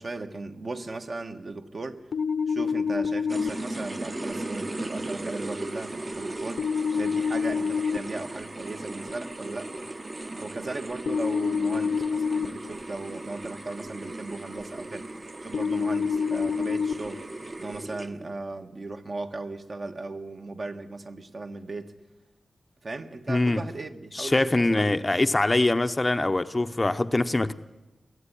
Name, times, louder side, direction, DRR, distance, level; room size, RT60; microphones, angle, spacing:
voice 1, 0.0-2.0 2.5-9.7 10.4-15.1 15.4-17.3 17.6-21.9 22.8-25.0, right 3 dB, 45° right, 1.5 m, -37 dB
sound 1, 2.1-3.5 6.6-8.0 11.1-12.4 15.5-16.9, left 5 dB, 85° left, 1.0 m, -26 dB
sound 2, 3.3-18.4, right 2 dB, 30° right, 1.0 m, -37 dB
voice 2, 23.3-23.6 24.1-27.5, left 2 dB, 25° left, 0.7 m, -23 dB
22.5 x 15.0 x 9.9 m
wide cardioid pair, 95°, 0 cm